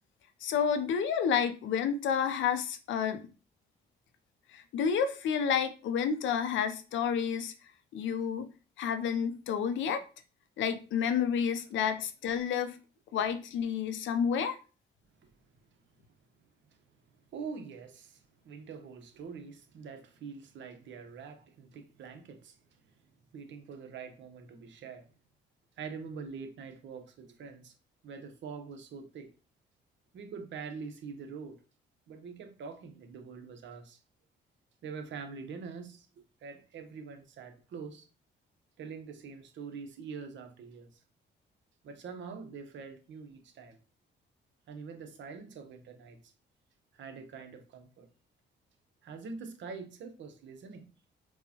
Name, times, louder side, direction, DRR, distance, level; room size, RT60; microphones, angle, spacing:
voice 1, 0.4-3.2 4.5-7.5 7.9-8.5 8.8-10.0 10.6-12.8 13.1-14.6, left 7 dB, 75° left, 0.6 m, -30 dB
voice 2, 17.3-22.6 23.3-25.1 25.8-27.7 28.0-29.3 30.1-31.6 32.1-34.0 34.8-36.1 36.4-38.1 38.8-40.9 41.8-43.8 44.7-46.3 46.9-48.1 49.0-50.9, right 5 dB, 65° right, 0.8 m, -44 dB
4.5 x 2.1 x 2.8 m
cardioid pair, 90°, 20 cm